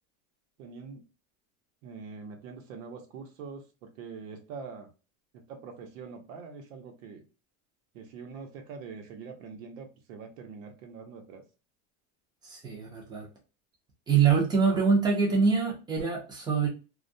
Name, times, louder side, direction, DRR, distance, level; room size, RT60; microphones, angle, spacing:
voice 1, 0.6-1.1 1.8-4.9 5.3-7.3 7.9-11.4, right 5 dB, 80° right, 5 dB, 0.9 m, -44 dB
voice 2, 12.4-13.3 14.1-16.7, right 5 dB, 10° right, -1 dB, 0.5 m, -25 dB
2.3 x 2.2 x 2.5 m, 0.32 s
supercardioid pair, 165°, 39 cm